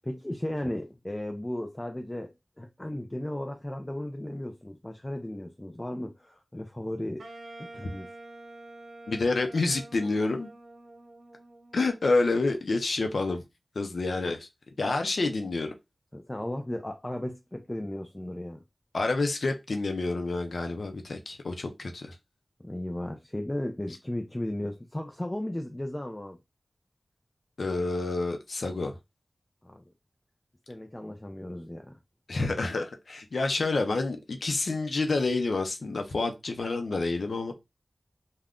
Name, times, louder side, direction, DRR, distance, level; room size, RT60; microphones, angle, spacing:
voice 1, 0.0-7.2 7.6-8.1 16.1-18.6 22.6-26.4 29.6-29.8 30.7-32.0, left 1 dB, 15° left, 0.3 m, -35 dB
Wind instrument woodwind instrument, 7.2-12.2, right 2 dB, 90° right, 0.6 m, -47 dB
voice 2, 9.1-10.5 11.7-13.4 13.8-14.5 14.8-15.7 18.9-22.1 27.6-28.9 32.3-37.5, left 3 dB, 75° left, 0.5 m, -28 dB
2.4 x 2.1 x 3.5 m
wide cardioid pair, 85°, 0 cm